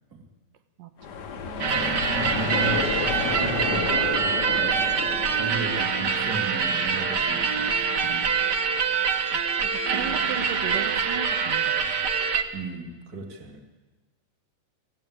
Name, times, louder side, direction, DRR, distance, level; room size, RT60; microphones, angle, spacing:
sound 1, 1.0-6.8, left 6 dB, 75° left, 0.9 m, -31 dB
sound 2, 1.6-12.4, right 6 dB, 60° right, 1.1 m, -25 dB
voice 1, 1.7-4.8 5.3-7.7 8.0-8.3 10.1-10.2 12.5-13.6, right 3 dB, 30° right, 4 dB, 2.8 m, -36 dB
sound 3, 2.9-6.1, left 2 dB, 30° left, 0.6 m, -45 dB
voice 2, 9.3-11.8, right 8 dB, 85° right, 8 dB, 2.8 m, -38 dB
25.0 x 15.5 x 8.8 m, 1.2 s
omnidirectional pair, 3.8 m